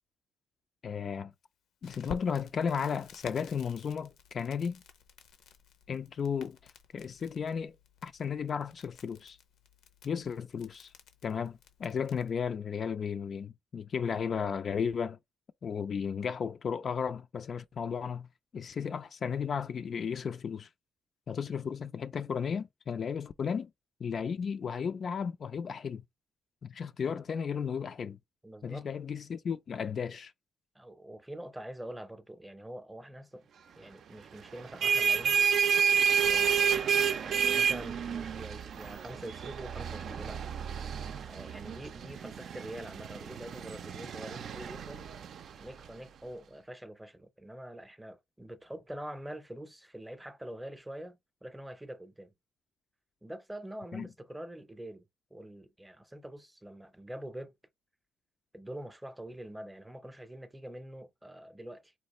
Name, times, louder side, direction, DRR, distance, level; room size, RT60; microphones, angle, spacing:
voice 1, 0.8-1.3 1.8-4.8 5.9-6.6 6.9-7.8 8.0-9.4 10.0-10.9 11.2-15.2 15.6-18.3 18.5-20.7 21.3-23.7 24.0-26.0 26.6-28.2 28.6-30.3 53.9-54.1, left 6 dB, 50° left, 0.3 m, -34 dB
Crackle, 1.8-12.3, left 7 dB, 80° left, 0.7 m, -52 dB
voice 2, 28.4-28.9 30.7-33.5 33.8-35.4 36.2-40.4 41.2-45.1 45.6-52.3 53.2-55.0 55.3-57.5 58.5-61.9, right 1 dB, 10° right, 0.6 m, -45 dB
sound 1, 34.5-45.9, right 7 dB, 65° right, 0.4 m, -30 dB
4.2 x 2.4 x 3.0 m
cardioid pair, 90°, 0 cm